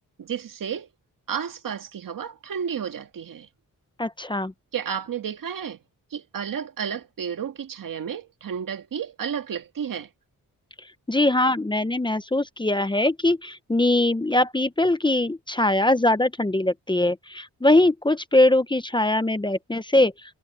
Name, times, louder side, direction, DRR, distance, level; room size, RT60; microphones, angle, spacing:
voice 1, 0.2-0.9 1.3-3.5 4.7-5.8 6.1-10.1, right 8 dB, 75° right, 1.9 m, -32 dB
voice 2, 4.0-4.5 11.1-20.1, left 1 dB, 15° left, 0.8 m, -21 dB
wide cardioid pair, 115°, 34 cm